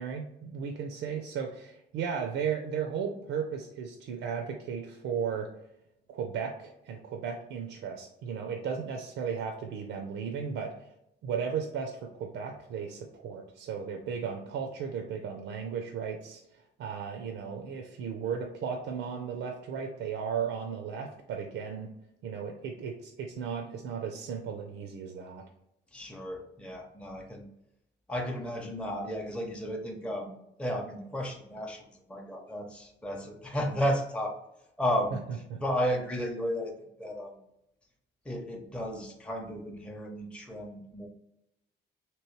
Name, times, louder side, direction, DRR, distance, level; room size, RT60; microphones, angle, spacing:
voice 1, 0.0-5.5 6.1-10.9 11.2-21.9 22.2-25.4 35.5-35.6, right 6 dB, 80° right, 4 dB, 0.5 m, -35 dB
voice 2, 25.9-27.4 28.1-30.3 30.6-34.4 34.8-35.2 35.6-36.7 37.0-37.4 38.2-41.1, equal, 5° left, 1 dB, 0.6 m, -33 dB
3.0 x 3.0 x 3.0 m, 0.82 s
cardioid pair, 90°, 20 cm